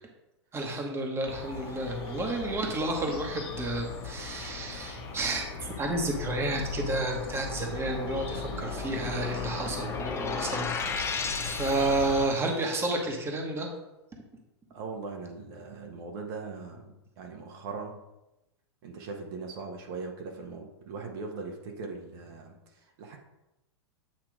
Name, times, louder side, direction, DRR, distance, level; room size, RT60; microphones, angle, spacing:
voice 1, 0.5-13.7, right 2 dB, 15° right, 2 dB, 1.3 m, -31 dB
sound 1, 1.3-12.3, left 4 dB, 55° left, 1.6 m, -38 dB
sound 2, 9.7-12.5, left 5 dB, 20° left, 0.6 m, -34 dB
voice 2, 14.7-18.0 18.8-23.2, right 4 dB, 55° right, 2 dB, 1.2 m, -40 dB
8.6 x 2.9 x 4.9 m, 0.94 s
hypercardioid pair, 110°, 15 cm